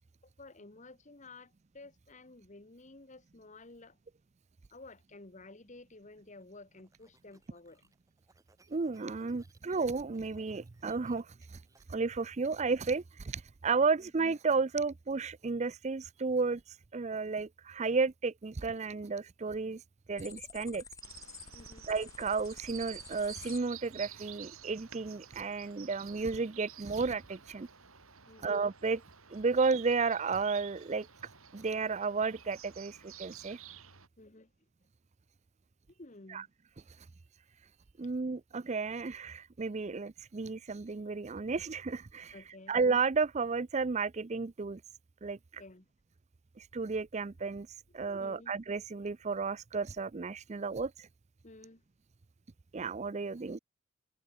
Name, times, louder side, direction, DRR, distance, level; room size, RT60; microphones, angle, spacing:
voice 1, 0.4-4.0 4.7-7.9 14.0-14.1 21.5-21.9 28.3-28.6 34.2-34.5 35.9-36.5 42.3-42.8 45.6-45.9 48.2-48.5 51.4-51.8, left 2 dB, 35° left, 1.3 m, -53 dB
sound 1, 6.4-12.9, right 2 dB, 15° right, 7.0 m, -68 dB
voice 2, 8.7-11.6 11.9-19.8 20.1-20.8 21.9-27.7 28.4-29.0 29.3-31.1 31.5-33.6 36.3-36.4 38.0-42.3 42.7-44.8 45.2-45.6 46.6-47.7 47.9-51.1 52.7-53.6, right 4 dB, 30° right, 0.5 m, -33 dB
sound 2, 20.2-23.6, left 5 dB, 15° left, 1.4 m, -50 dB
sound 3, 21.0-34.1, right 10 dB, 70° right, 4.4 m, -51 dB
head